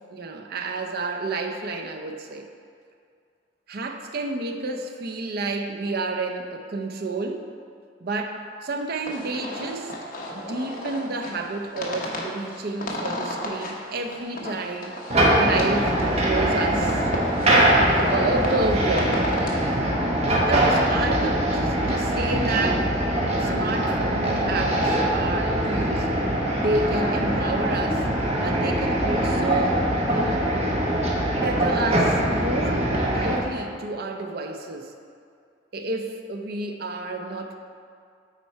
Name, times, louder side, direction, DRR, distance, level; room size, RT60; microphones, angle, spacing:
voice 1, 0.1-2.5 3.7-7.5 8.0-9.9 10.3-15.0 15.4-17.0 17.9-19.3 20.5-22.9 23.4-26.1 26.6-28.1 28.4-29.8 30.1-30.5 31.4-34.9 35.7-37.6, right 2 dB, 60° right, 4 dB, 0.6 m, -30 dB
sound 1, 9.0-19.7, left 1 dB, 50° left, 1.0 m, -33 dB
sound 2, 15.1-33.4, right 1 dB, 35° right, 1.1 m, -22 dB
8.3 x 4.5 x 4.5 m, 2.3 s
head